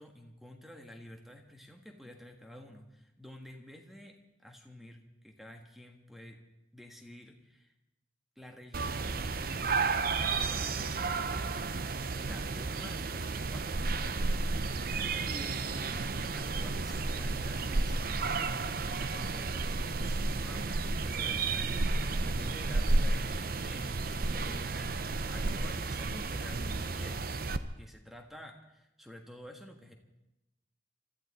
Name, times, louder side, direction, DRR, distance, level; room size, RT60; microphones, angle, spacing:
voice 1, 0.0-6.4 6.7-7.7 8.4-9.9 10.1-14.8 15.2-27.3 27.8-29.9, left 1 dB, ahead, 3 dB, 1.4 m, -50 dB
sound 1, 8.7-27.6, right 3 dB, 50° right, 0.7 m, -32 dB
25.5 x 13.5 x 4.2 m, 0.92 s
head